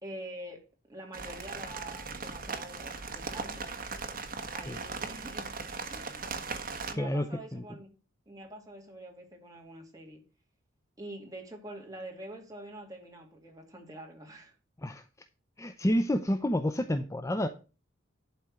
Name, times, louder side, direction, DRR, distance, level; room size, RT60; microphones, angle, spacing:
voice 1, 0.0-3.6 4.5-5.5 5.9-6.3 6.9-7.9 8.3-10.2 11.0-14.5, right 1 dB, 15° right, 2.6 m, -46 dB
sound 1, 1.1-6.9, right 4 dB, 45° right, 1.4 m, -38 dB
voice 2, 6.9-7.3 7.5-7.6 14.8-15.0 15.6-17.5, left 1 dB, 15° left, 0.5 m, -29 dB
11.5 x 4.4 x 6.5 m
head